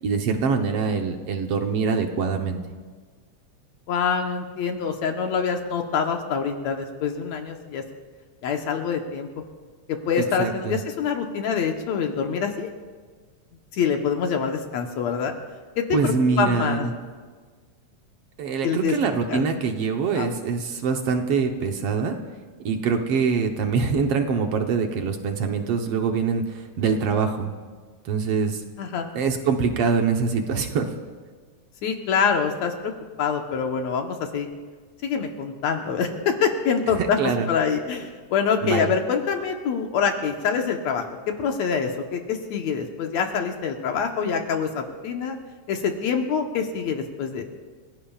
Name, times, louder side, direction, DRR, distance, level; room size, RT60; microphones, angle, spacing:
voice 1, 0.0-2.6 10.2-10.8 15.9-16.9 18.4-22.2 22.7-27.5 28.1-28.6 29.2-30.9 37.2-37.5 38.6-38.9, right 5 dB, 65° right, 4 dB, 1.8 m, -24 dB
voice 2, 3.9-7.8 8.4-9.4 9.9-12.7 13.7-15.3 15.8-16.9 18.6-19.0 19.3-19.5 20.2-20.3 28.8-29.1 31.8-32.9 33.2-34.5 35.0-45.4 45.7-47.4, left 6 dB, 70° left, 3 dB, 2.2 m, -25 dB
29.0 x 17.0 x 2.4 m, 1.5 s
omnidirectional pair, 3.4 m